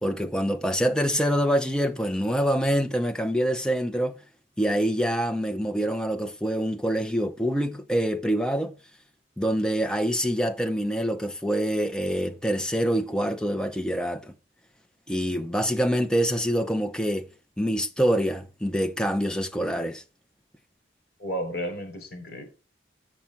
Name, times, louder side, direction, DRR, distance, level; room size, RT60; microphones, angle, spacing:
voice 1, 0.0-4.2 4.6-8.7 9.4-14.3 15.1-17.3 17.6-20.0, equal, 5° left, 0.5 m, -25 dB
voice 2, 21.2-22.4, equal, 55° left, 4.2 m, -32 dB
7.4 x 6.1 x 4.3 m
head